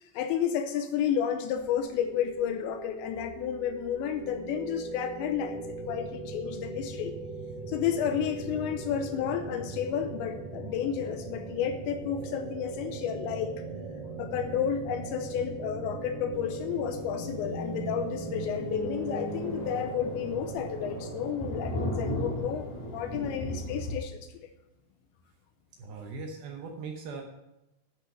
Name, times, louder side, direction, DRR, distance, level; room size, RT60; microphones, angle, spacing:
voice 1, 0.0-7.1 7.7-13.6 14.2-24.5, left 8 dB, 85° left, 8 dB, 2.7 m, -31 dB
sound 1, 1.5-21.4, right 3 dB, 60° right, 3.5 m, -39 dB
Thunder, 17.0-17.2 17.6-17.7 18.0-18.1 18.4-18.5 18.8-24.0, equal, 45° left, 4.0 m, -36 dB
sound 2, 17.1-21.2, equal, 70° left, 4.6 m, -40 dB
voice 2, 25.8-27.2, right 4 dB, 80° right, 2 dB, 2.2 m, -39 dB
11.5 x 6.3 x 6.6 m, 0.91 s
omnidirectional pair, 5.8 m